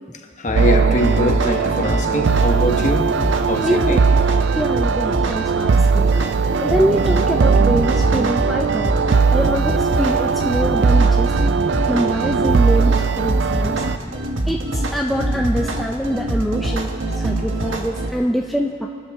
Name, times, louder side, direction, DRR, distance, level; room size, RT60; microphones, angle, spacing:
voice 1, 0.4-3.2 3.4-4.1 9.5-9.6, left 1 dB, 40° left, 3 dB, 1.1 m, -23 dB
sound 1, 0.5-14.0, right 5 dB, 60° right, 0.4 m, -19 dB
sound 2, 1.0-18.1, right 1 dB, 80° right, 1.3 m, -24 dB
voice 2, 3.6-4.0 4.5-6.1 6.3-8.9 9.3-11.3 11.9-13.8 14.0-14.2 14.5-18.9, equal, ahead, 0 dB, 0.5 m, -24 dB
26.5 x 12.5 x 3.6 m, 2.4 s
head